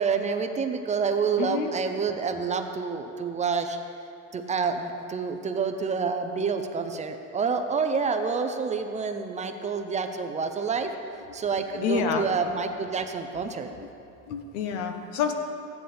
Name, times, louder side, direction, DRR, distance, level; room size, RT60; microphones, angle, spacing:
voice 1, 0.0-3.8 4.3-13.7, right 5 dB, 20° right, 7 dB, 0.5 m, -28 dB
voice 2, 1.4-1.7 11.8-12.2 14.3-15.3, left 6 dB, 85° left, 6 dB, 1.1 m, -27 dB
14.5 x 10.0 x 3.4 m, 2.7 s
cardioid pair, 145°, 32 cm